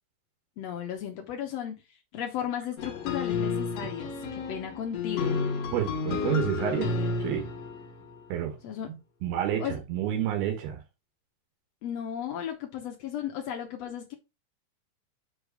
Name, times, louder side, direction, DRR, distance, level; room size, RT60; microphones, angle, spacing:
voice 1, 0.6-5.4 8.6-8.9 9.6-9.8 11.8-14.1, left 9 dB, 85° left, 1.4 m, -35 dB
sound 1, 2.8-8.2, left 4 dB, 55° left, 2.0 m, -31 dB
voice 2, 5.7-6.9 7.2-7.5 8.3-8.6 8.9-10.8, right 10 dB, 85° right, 3.2 m, -29 dB
6.2 x 4.9 x 5.0 m
omnidirectional pair, 4.3 m